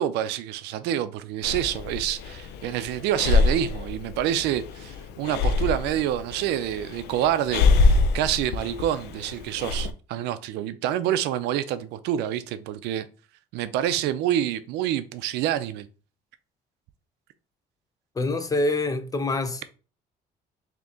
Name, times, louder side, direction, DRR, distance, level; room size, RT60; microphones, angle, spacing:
voice 1, 0.0-13.1 13.5-15.9, right 11 dB, 90° right, 0.4 m, -27 dB
Breathing, 1.4-9.9, left 3 dB, 80° left, 0.5 m, -25 dB
voice 2, 18.2-19.6, left 2 dB, 20° left, 0.5 m, -25 dB
3.8 x 2.9 x 3.5 m
cardioid pair, 110°, 17 cm